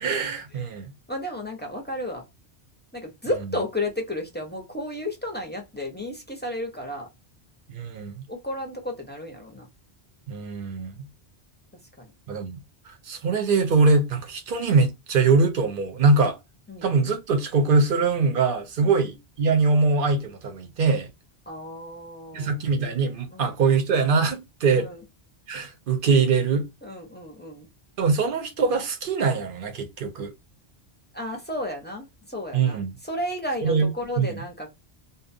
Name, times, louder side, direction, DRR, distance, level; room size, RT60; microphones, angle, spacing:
voice 1, 0.0-0.9 7.7-8.3 10.3-11.1 12.3-12.6 12.9-16.4 16.8-21.1 22.3-24.9 25.5-26.7 28.0-30.3 32.5-32.9 33.6-33.9 34.2-34.3, right 4 dB, 55° right, 0.8 m, -22 dB
voice 2, 1.1-2.2 2.9-7.1 8.3-9.7 12.0-12.1 16.7-16.9 18.8-19.0 21.5-22.6 23.3-23.5 24.7-25.0 26.8-27.7 31.1-34.7, left 1 dB, 15° left, 0.5 m, -33 dB
2.6 x 2.1 x 2.5 m
omnidirectional pair, 1.1 m